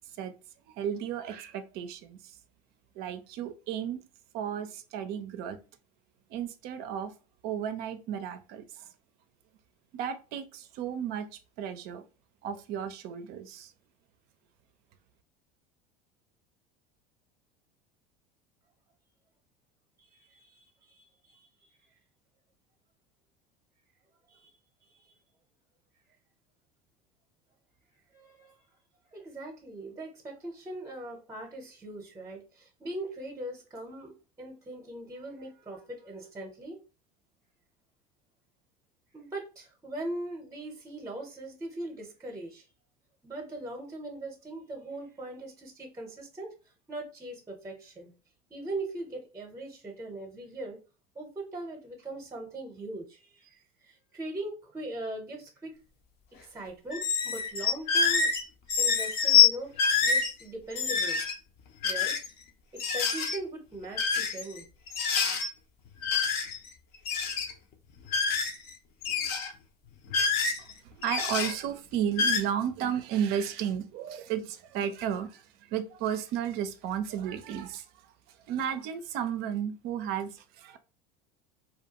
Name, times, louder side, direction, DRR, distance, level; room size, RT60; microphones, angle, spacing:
voice 1, 0.8-2.4 2.9-4.0 4.3-5.6 6.3-7.1 7.4-8.9 9.9-11.3 11.6-12.1 12.4-13.7 70.6-77.9 78.5-80.8, right 9 dB, 55° right, 0.4 m, -33 dB
voice 2, 20.0-21.5 24.3-24.5 24.9-25.1 28.1-28.6 29.1-36.8 39.1-42.6 43.2-46.5 46.9-48.1 48.5-50.8 51.1-55.8 56.4-58.3 58.8-61.2 61.8-62.2 62.7-64.6, right 1 dB, 15° right, 0.7 m, -40 dB
sound 1, 56.9-58.4 58.7-59.5 59.8-60.3 60.7-61.3 61.8-62.3 62.8-63.4 64.0-64.6 64.9-65.5 66.0-66.7 66.9-67.5 68.1-68.7 69.0-69.5 70.1-70.7 71.0-71.5 72.1-72.4, left 6 dB, 55° left, 0.6 m, -26 dB
2.3 x 2.2 x 2.8 m
hypercardioid pair, 85°, 19 cm